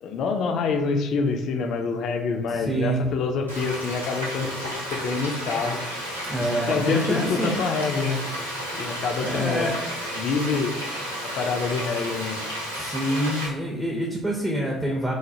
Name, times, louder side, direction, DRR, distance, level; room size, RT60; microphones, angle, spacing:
voice 1, 0.0-5.8 6.7-8.2 8.7-9.7 10.2-10.7 11.2-12.4, left 4 dB, 50° left, 5 dB, 0.3 m, -26 dB
voice 2, 2.5-3.1 6.3-7.6 9.2-9.7 12.7-15.1, right 1 dB, 10° right, -2 dB, 0.5 m, -26 dB
Frying (food), 3.5-13.5, equal, 90° right, 0.5 m, -32 dB
3.1 x 2.1 x 2.6 m, 0.97 s
figure-of-eight pair, 55°, 0 cm